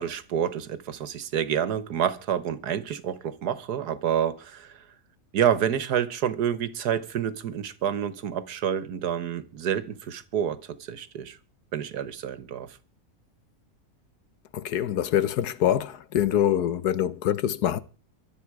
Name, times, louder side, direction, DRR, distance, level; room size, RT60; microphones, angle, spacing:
voice 1, 0.0-4.8 5.3-11.4 11.7-12.8, right 9 dB, 80° right, 1.7 m, -28 dB
voice 2, 14.5-17.8, left 10 dB, 80° left, 1.5 m, -25 dB
23.5 x 8.2 x 4.8 m
omnidirectional pair, 1.7 m